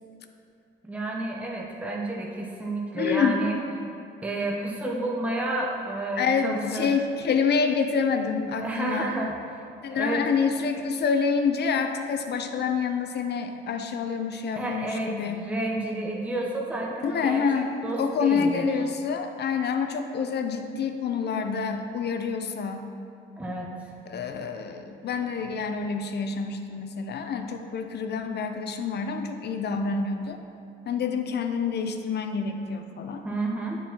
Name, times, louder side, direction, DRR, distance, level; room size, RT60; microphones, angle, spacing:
voice 1, 0.8-3.5 4.2-6.9 8.6-9.3 9.9-10.2 14.5-18.7 23.4-23.9 33.2-33.8, right 2 dB, 5° right, -2 dB, 0.8 m, -31 dB
voice 2, 2.9-3.4 6.2-9.1 9.8-15.4 17.0-17.7 18.0-22.9 24.1-30.4 30.9-33.2, left 5 dB, 55° left, 6 dB, 0.6 m, -27 dB
11.0 x 4.6 x 2.9 m, 2.7 s
cardioid pair, 90°, 20 cm